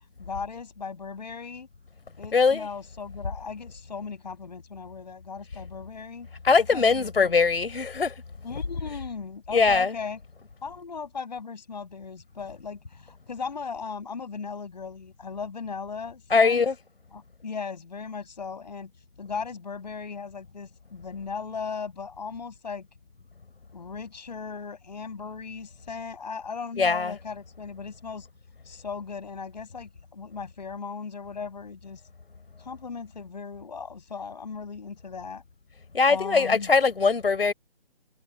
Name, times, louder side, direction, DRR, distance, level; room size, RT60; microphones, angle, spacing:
voice 1, 0.2-1.7 2.2-6.3 6.7-7.3 8.4-10.2 10.6-16.6 17.1-18.9 19.2-22.9 23.7-28.3 28.6-32.0 32.6-35.4 36.1-36.7, left 5 dB, 45° left, 8.0 m, -37 dB
voice 2, 2.3-2.7 6.4-8.1 9.5-9.9 16.3-16.7 26.8-27.1 35.9-37.5, left 4 dB, 65° left, 4.0 m, -21 dB
hypercardioid pair, 175°, 31 cm